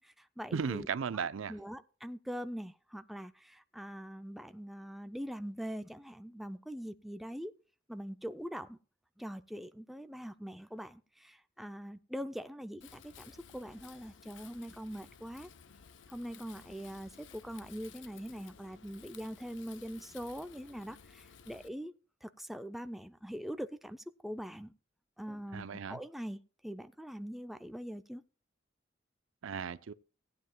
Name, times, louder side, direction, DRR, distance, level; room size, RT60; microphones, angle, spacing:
voice 1, 0.0-0.9 1.5-7.5 7.9-8.8 9.2-15.5 16.1-21.9 22.2-24.7 25.2-26.4 26.6-28.2, equal, ahead, 0.4 m, -43 dB
voice 2, 0.5-1.6 25.5-26.0 29.4-29.9, right 6 dB, 85° right, 0.5 m, -36 dB
Wind, 12.8-21.7, left 7 dB, 65° left, 0.7 m, -56 dB
18.5 x 9.4 x 2.2 m
head